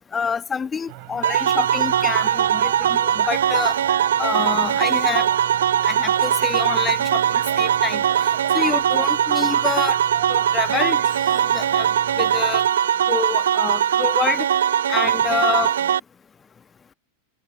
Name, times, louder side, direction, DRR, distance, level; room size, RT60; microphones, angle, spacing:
voice 1, 0.1-3.8 4.2-5.3 5.8-10.0 10.3-11.9 12.2-12.6 13.1-14.5 14.9-15.8, left 6 dB, 20° left, 1.6 m, -27 dB
sound 1, 0.9-12.7, right 37 dB, 45° right, 3.2 m, -36 dB
sound 2, 1.2-16.0, right 9 dB, 65° right, 0.5 m, -20 dB
figure-of-eight pair, 90°, 0 cm